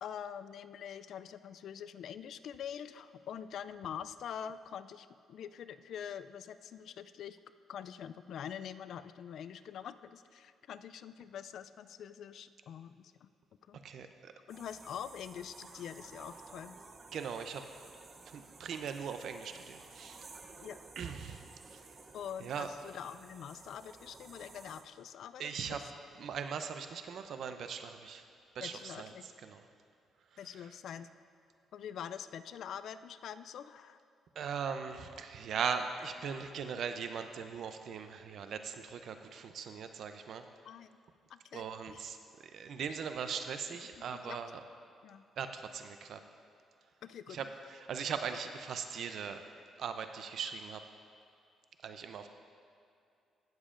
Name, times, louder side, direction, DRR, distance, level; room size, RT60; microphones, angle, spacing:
voice 1, 0.0-7.4 7.7-13.3 13.7-13.8 14.5-16.8 20.6-20.8 22.1-25.8 28.6-29.3 30.4-31.1 31.7-34.0 40.6-40.9 41.3-41.6 41.9-42.1 43.9-44.4 45.0-45.2 47.0-47.4, left 8 dB, 70° left, 13 dB, 0.3 m, -45 dB
voice 2, 13.8-14.3 17.1-17.7 18.3-20.3 21.0-21.9 22.4-22.7 25.4-25.8 26.2-28.2 28.5-29.6 34.4-40.5 41.5-42.2 42.5-44.6 45.4-46.2 47.3-49.4 49.8-50.8 51.8-52.3, right 6 dB, 65° right, 8 dB, 0.6 m, -40 dB
sound 1, 14.5-24.8, right 3 dB, 40° right, 0.8 m, -54 dB
17.0 x 7.2 x 2.5 m, 2.5 s
cardioid pair, 90°, 0 cm